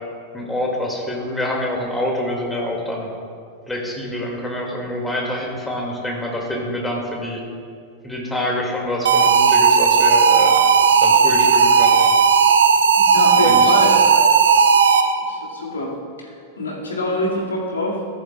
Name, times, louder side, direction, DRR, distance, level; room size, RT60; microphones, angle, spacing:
voice 1, 0.3-3.1 3.7-7.4 8.0-10.6 11.0-12.1 13.4-13.8, left 1 dB, 5° left, -1 dB, 2.0 m, -26 dB
sound 1, 9.1-15.3, right 6 dB, 65° right, 0.5 m, -14 dB
voice 2, 13.1-14.1 14.5-14.6 15.3-15.9 16.2-16.3 16.6-18.0, left 1 dB, 70° left, -2 dB, 2.0 m, -25 dB
14.5 x 11.0 x 2.3 m, 2.4 s
figure-of-eight pair, 90°, 0 cm